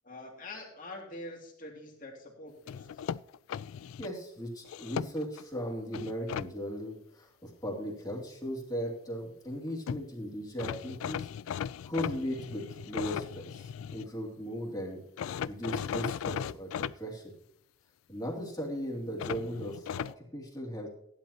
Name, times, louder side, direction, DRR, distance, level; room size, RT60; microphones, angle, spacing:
voice 1, 0.0-3.1, left 1 dB, 40° left, 0 dB, 2.6 m, -45 dB
sound 1, 2.7-4.1 4.7-5.4 5.9-6.5 9.6-9.7 9.9-10.0 10.6-14.1 15.2-16.9 19.2-20.1, left 8 dB, 75° left, 0.3 m, -37 dB
voice 2, 4.0-11.3 11.9-15.0 15.5-17.3 18.1-20.9, equal, 20° left, -2 dB, 2.6 m, -37 dB
15.5 x 11.0 x 2.9 m, 0.74 s
head